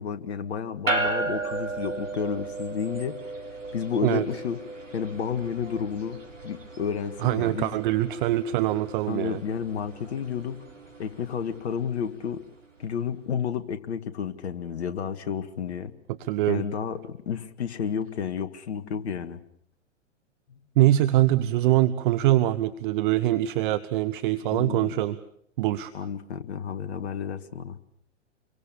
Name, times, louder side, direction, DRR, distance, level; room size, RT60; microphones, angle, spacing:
voice 1, 0.0-3.2 3.7-4.6 4.9-7.7 9.1-10.6 11.0-12.4 12.8-15.9 16.5-19.4 24.5-25.0 25.9-27.8, left 7 dB, 60° left, 10 dB, 1.9 m, -31 dB
sound 1, 0.9-12.4, right 2 dB, 85° right, 3.9 m, -35 dB
voice 2, 7.2-9.4 16.2-16.6 20.8-25.2 25.6-25.9, right 14 dB, 40° right, 12 dB, 1.1 m, -23 dB
27.5 x 23.0 x 7.1 m, 0.69 s
figure-of-eight pair, 110°, 37 cm